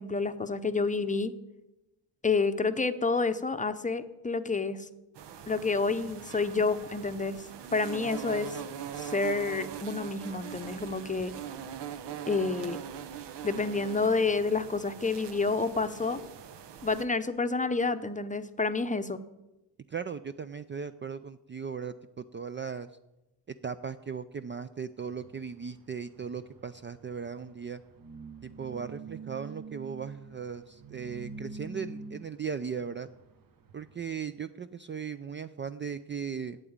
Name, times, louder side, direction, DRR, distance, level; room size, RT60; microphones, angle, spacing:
voice 1, 0.0-1.3 2.2-4.9 5.5-8.6 9.0-11.3 12.3-12.8 13.4-16.2 16.8-19.2, left 4 dB, 20° left, 10 dB, 0.7 m, -29 dB
sound 1, 5.2-17.1, right 8 dB, 75° right, 1.0 m, -42 dB
voice 2, 19.9-22.9 23.6-27.8 28.4-33.1 33.7-36.6, right 6 dB, 30° right, 11 dB, 0.4 m, -37 dB
sound 2, 25.0-34.0, right 4 dB, 55° right, 1.1 m, -47 dB
8.7 x 8.1 x 8.7 m, 0.98 s
cardioid pair, 100°, 42 cm